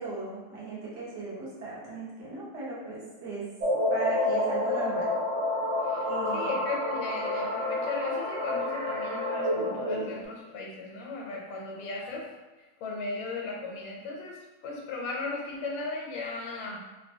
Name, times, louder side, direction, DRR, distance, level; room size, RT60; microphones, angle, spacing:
voice 1, 0.0-3.4 3.9-5.1 6.0-6.5, right 2 dB, 70° right, -7 dB, 1.6 m, -37 dB
sound 1, 3.6-10.2, left 1 dB, 90° right, 0.6 m, -29 dB
voice 2, 5.8-12.3 12.8-16.8, left 3 dB, 85° left, -1 dB, 1.4 m, -36 dB
3.7 x 2.2 x 2.7 m, 1.1 s
omnidirectional pair, 2.0 m